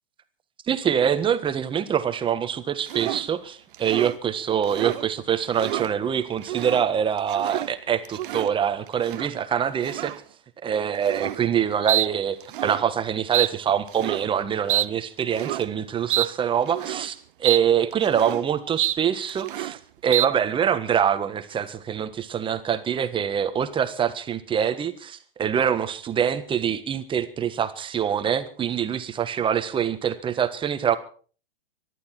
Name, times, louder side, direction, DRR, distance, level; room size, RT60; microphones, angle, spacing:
voice 1, 0.7-10.1 10.6-31.0, right 8 dB, 15° right, 11 dB, 1.5 m, -25 dB
sound 1, 2.9-3.3 3.7-4.2 4.6-5.0 5.4-5.9 6.4-6.8 7.2-7.7 8.0-8.5 9.0-9.3 9.8-10.2 11.0-11.4 11.9-12.1 12.4-12.8 13.3-13.5 13.9-14.3 14.7-14.9 15.3-15.6 16.1-16.3 16.7-17.1 17.4-17.6 17.9-18.4 18.8-19.0 19.3-19.8 20.1-20.3, right 13 dB, 60° right, 0.9 m, -27 dB
24.5 x 11.5 x 4.5 m, 0.43 s
hypercardioid pair, 125°, 29 cm